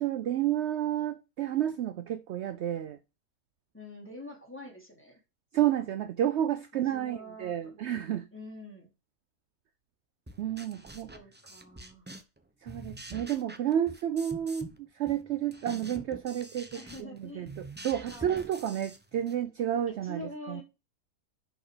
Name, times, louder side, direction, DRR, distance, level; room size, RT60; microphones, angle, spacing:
voice 1, 0.0-3.0 5.5-8.3 10.4-11.1 12.6-17.5 17.8-20.2 20.5-20.6, right 11 dB, 70° right, 0.6 m, -31 dB
voice 2, 3.7-5.2 6.7-7.8 8.3-8.9 11.1-12.1 16.7-17.5 18.1-18.4 20.0-20.6, left 1 dB, 10° left, 2.6 m, -45 dB
sound 1, 10.3-12.4 12.6-14.8 15.1-19.4, right 2 dB, 15° right, 0.3 m, -46 dB
6.4 x 4.5 x 4.9 m
omnidirectional pair, 1.7 m